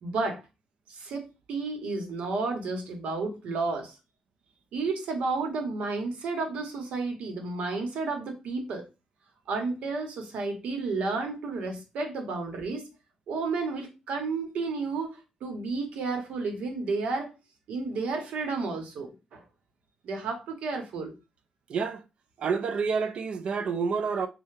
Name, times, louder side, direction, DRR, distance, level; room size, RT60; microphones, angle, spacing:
voice 1, 0.0-0.4 0.9-3.9 4.7-8.9 9.5-12.8 13.3-17.3 17.7-19.4 20.0-21.1, right 3 dB, 80° right, 0.9 m, -32 dB
voice 2, 21.7-22.0 22.4-24.3, right 5 dB, 55° right, 0.4 m, -28 dB
3.3 x 2.2 x 3.2 m
wide cardioid pair, 160°, 2 cm